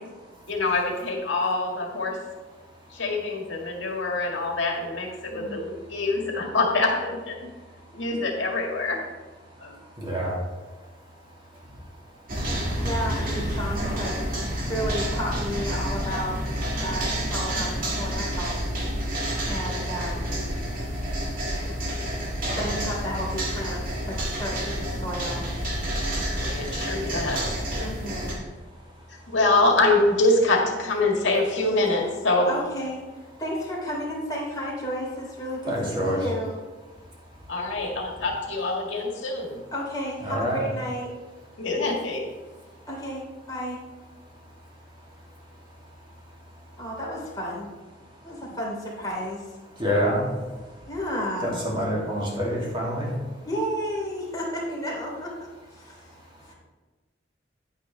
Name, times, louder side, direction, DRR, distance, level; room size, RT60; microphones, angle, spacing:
voice 1, 0.5-2.2 2.9-7.5 7.9-9.0 9.6-9.7 26.3-27.6 29.3-32.5 37.5-39.6 41.6-42.3, left 2 dB, 80° left, 0 dB, 1.9 m, -25 dB
voice 2, 5.3-5.6 12.6-14.2 14.6-16.4 16.8-18.6 19.4-20.4 22.6-25.4 27.8-28.4 32.5-33.0 33.4-35.7 36.0-36.6 39.7-41.1 42.9-43.8 46.8-47.7 48.2-49.4 50.9-51.5 53.4-55.5 55.7-56.1 56.4-56.5, equal, 20° left, -4 dB, 3.1 m, -32 dB
voice 3, 10.0-10.3 35.7-36.2 40.2-40.7 49.8-50.3 51.4-53.1, equal, 25° right, -4 dB, 2.5 m, -26 dB
sound 1, 12.3-28.3, equal, 50° right, 1.9 m, -29 dB
9.6 x 9.0 x 3.3 m, 1.3 s
head